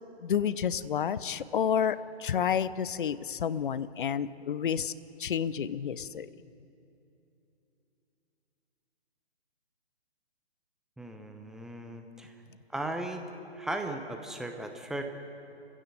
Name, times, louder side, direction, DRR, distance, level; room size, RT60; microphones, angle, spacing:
voice 1, 0.2-4.9 5.2-6.3, left 8 dB, 50° left, 16 dB, 0.8 m, -30 dB
voice 2, 11.0-12.3 12.7-13.2 13.6-15.0, right 1 dB, ahead, 5 dB, 0.8 m, -37 dB
29.0 x 16.0 x 7.8 m, 2.9 s
figure-of-eight pair, 135°, 33 cm